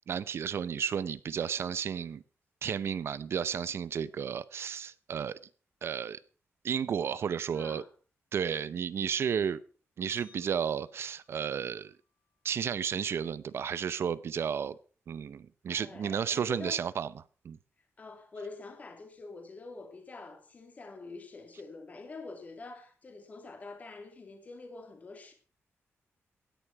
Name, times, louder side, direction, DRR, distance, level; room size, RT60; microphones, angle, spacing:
voice 1, 0.1-2.2 2.6-5.4 5.8-6.2 6.6-7.8 8.3-9.6 10.0-11.9 12.4-14.8 15.1-17.1 17.4-17.6, right 7 dB, 60° right, 0.7 m, -32 dB
voice 2, 7.5-7.9 15.7-16.8 18.0-25.3, left 3 dB, 30° left, 2.8 m, -46 dB
sound 1, 10.1-12.5, left 5 dB, 90° left, 3.1 m, -61 dB
16.5 x 10.0 x 6.0 m
wide cardioid pair, 180°, 5 cm